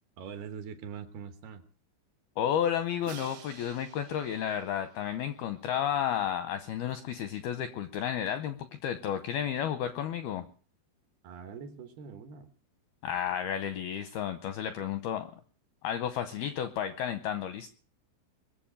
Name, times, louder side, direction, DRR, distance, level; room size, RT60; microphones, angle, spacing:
voice 1, 0.2-1.6 11.2-12.5, right 7 dB, 70° right, 8 dB, 2.8 m, -43 dB
voice 2, 2.4-10.5 13.0-15.3 15.8-17.7, left 9 dB, 80° left, 10 dB, 2.2 m, -32 dB
Crash cymbal, 3.0-6.0, right 9 dB, 85° right, 4.1 m, -51 dB
21.5 x 7.5 x 8.8 m, 0.42 s
omnidirectional pair, 5.4 m